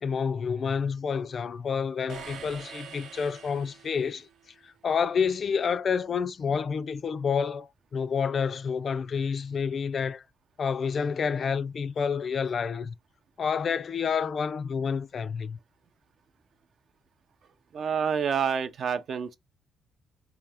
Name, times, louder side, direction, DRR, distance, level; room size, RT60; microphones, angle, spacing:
voice 1, 0.0-4.3 4.6-10.2 10.6-13.0 13.4-15.6, left 6 dB, 50° left, 0.3 m, -29 dB
sound 1, 2.1-4.3, right 7 dB, 80° right, 0.8 m, -44 dB
voice 2, 17.7-19.4, right 7 dB, 55° right, 0.4 m, -28 dB
3.5 x 2.7 x 3.3 m
cardioid pair, 90°, 0 cm